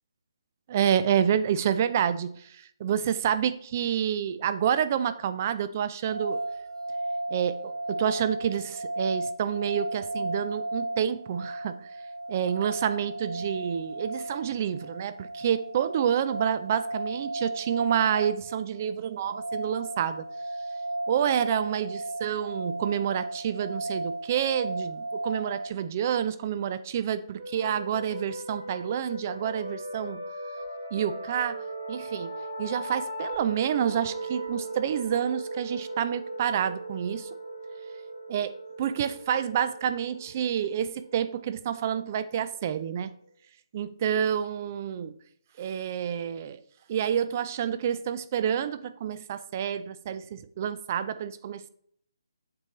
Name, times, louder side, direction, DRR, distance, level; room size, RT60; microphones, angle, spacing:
voice 1, 0.7-6.4 7.3-11.8 12.3-20.3 21.1-30.2 30.9-31.6 31.9-32.3 32.6-37.3 38.3-43.1 43.7-45.1 45.6-46.6 46.9-51.7, right 9 dB, 30° right, 13 dB, 0.4 m, -28 dB
sound 1, 6.0-25.7, right 2 dB, 80° right, 0.5 m, -35 dB
sound 2, 27.4-42.7, right 1 dB, 55° right, 1.9 m, -38 dB
7.6 x 4.4 x 3.1 m, 0.66 s
figure-of-eight pair, 150°, 2 cm